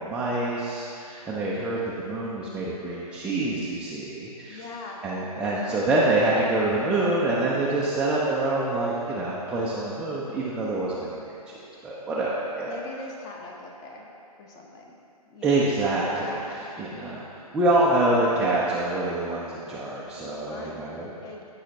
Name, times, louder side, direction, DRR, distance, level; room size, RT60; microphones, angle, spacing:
voice 1, 0.0-4.6 5.0-12.8 15.4-21.1, right 2 dB, 5° right, -7 dB, 0.4 m, -26 dB
voice 2, 4.5-5.1 5.3-6.2 12.7-14.1 14.4-14.9 15.3-15.6 16.1-16.7 20.2-20.8 21.2-21.5, left 3 dB, 20° left, 0 dB, 0.8 m, -42 dB
14.0 x 5.5 x 2.7 m, 2.9 s
figure-of-eight pair, 125°, 20 cm